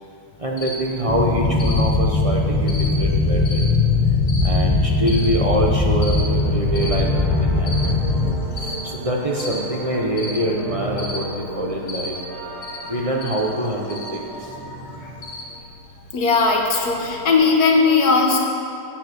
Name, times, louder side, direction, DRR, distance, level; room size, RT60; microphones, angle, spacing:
voice 1, 0.4-3.7 4.4-7.9 8.6-12.2 12.9-14.5, right 1 dB, 25° right, -2 dB, 0.8 m, -25 dB
Cricket, 0.6-17.3, left 1 dB, 40° left, 1.5 m, -36 dB
sound 1, 1.1-8.3, left 3 dB, 20° left, 0.9 m, -20 dB
sound 2, 6.0-15.6, right 1 dB, ahead, 2.7 m, -35 dB
voice 2, 16.1-18.4, left 4 dB, 60° left, 1 dB, 1.7 m, -17 dB
10.5 x 9.1 x 5.1 m, 2.7 s
omnidirectional pair, 1.9 m